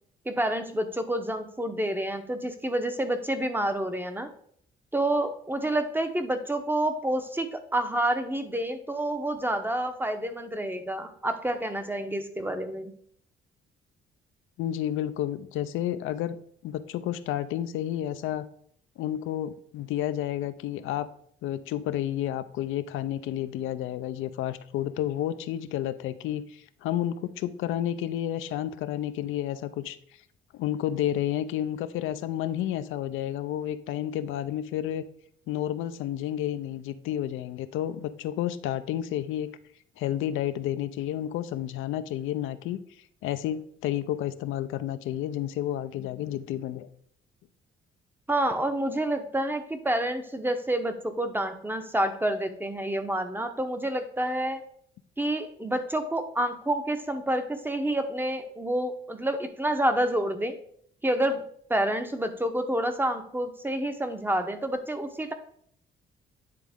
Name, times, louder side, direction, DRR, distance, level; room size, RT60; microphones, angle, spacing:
voice 1, 0.3-4.3 4.9-12.9 48.3-54.6 55.2-60.6 61.0-61.4 61.7-65.3, right 1 dB, 10° right, 8 dB, 0.7 m, -28 dB
voice 2, 14.6-16.4 16.6-18.5 19.0-21.1 21.4-30.0 30.5-35.1 35.5-39.5 40.0-42.8 43.2-46.9, left 11 dB, 85° left, 11 dB, 0.4 m, -31 dB
9.3 x 3.5 x 3.5 m, 0.64 s
cardioid pair, 90°, 20 cm